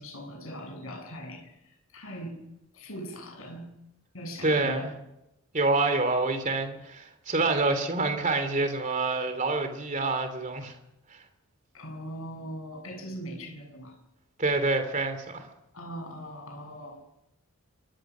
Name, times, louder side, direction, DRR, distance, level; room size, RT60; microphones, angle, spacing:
voice 1, 0.0-2.4 2.7-3.7 4.1-4.9 11.7-14.0 15.7-17.0, equal, 65° left, 7.7 m, -40 dB
voice 2, 4.4-5.0 5.5-10.7 11.1-11.2 14.4-15.5, right 3 dB, 35° right, 3.2 m, -27 dB
26.5 x 24.0 x 6.3 m
head